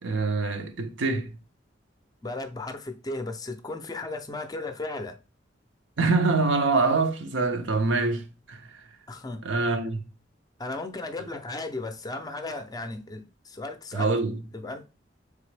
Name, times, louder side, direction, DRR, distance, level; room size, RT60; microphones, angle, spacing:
voice 1, 0.0-1.4 6.0-8.8 9.4-10.0 13.9-14.4, right 3 dB, 80° right, 0.7 m, -25 dB
voice 2, 2.2-5.2 9.1-9.4 10.6-14.1 14.5-14.8, left 2 dB, 20° left, 0.5 m, -35 dB
4.1 x 3.4 x 3.2 m
head